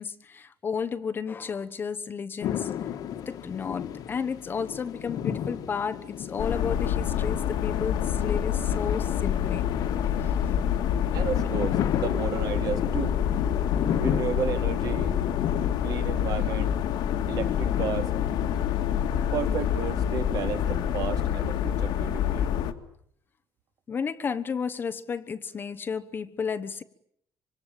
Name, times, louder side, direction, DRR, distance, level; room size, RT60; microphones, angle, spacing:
voice 1, 0.0-2.7 3.3-9.7 10.2-10.5 23.9-26.8, left 6 dB, 30° left, 1.1 m, -32 dB
sound 1, 2.4-21.3, left 9 dB, 55° left, 1.9 m, -35 dB
sound 2, 6.4-22.7, left 9 dB, 75° left, 2.2 m, -27 dB
voice 2, 11.1-13.2 14.0-15.2 15.8-16.8 17.3-18.1 19.3-22.4, right 8 dB, 55° right, 2.9 m, -33 dB
26.0 x 25.0 x 9.1 m
cardioid pair, 170°, 7 cm